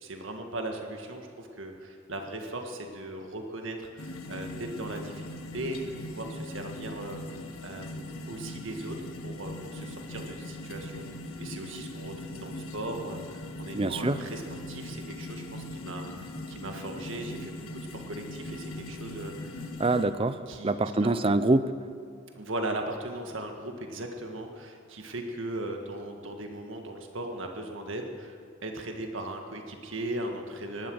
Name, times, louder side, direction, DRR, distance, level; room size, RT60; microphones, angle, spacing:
voice 1, 0.0-11.1 11.4-14.4 14.7-16.1 16.5-19.7 20.5-21.1 22.4-30.9, right 1 dB, 70° right, 3 dB, 1.7 m, -38 dB
sound 1, 4.0-20.1, left 1 dB, 90° left, 1.5 m, -40 dB
voice 2, 13.7-14.2 19.8-21.7, right 2 dB, 25° right, 13 dB, 0.5 m, -25 dB
17.5 x 12.0 x 6.4 m, 2.3 s
head